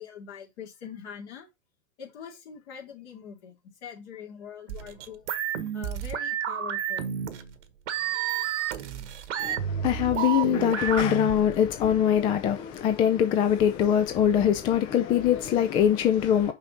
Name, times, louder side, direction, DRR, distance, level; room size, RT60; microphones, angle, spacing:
voice 1, 0.0-1.5 2.0-5.3 5.7-7.4, left 7 dB, 50° left, 2.7 m, -43 dB
Perc & Blonk, 4.7-11.6, right 10 dB, 60° right, 1.1 m, -31 dB
voice 2, 9.4-16.5, left 9 dB, 15° left, 0.3 m, -23 dB
5.7 x 5.4 x 3.9 m
figure-of-eight pair, 100°, 41 cm